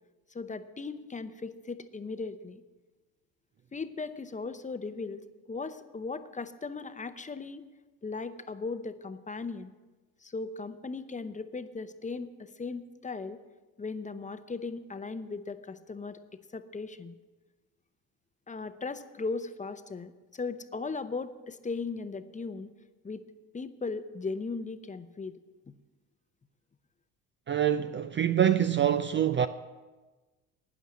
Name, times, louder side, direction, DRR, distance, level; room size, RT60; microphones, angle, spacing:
voice 1, 0.3-2.6 3.7-5.2 5.5-7.7 8.0-9.7 10.2-13.4 13.8-16.2 16.5-17.2 18.5-22.7 23.0-23.2 23.5-25.4 25.7-25.8, left 4 dB, 20° left, 0.8 m, -37 dB
voice 2, 27.5-29.5, right 10 dB, 30° right, 0.4 m, -25 dB
12.5 x 9.2 x 6.2 m
hypercardioid pair, 70°, 40 cm